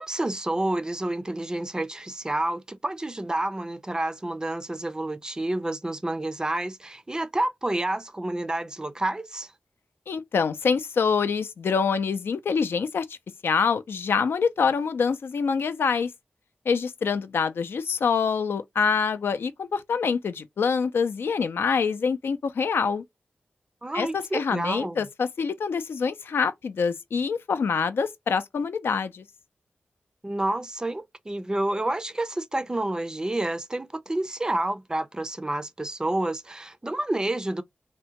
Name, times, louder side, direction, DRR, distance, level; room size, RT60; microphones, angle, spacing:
voice 1, 0.0-9.5 23.8-25.0 30.2-37.6, right 1 dB, 20° right, 0.4 m, -29 dB
voice 2, 10.1-13.2 13.4-16.1 16.7-23.0 23.9-29.2, left 5 dB, 85° left, 0.4 m, -25 dB
3.5 x 2.1 x 2.8 m
wide cardioid pair, 90°, 4 cm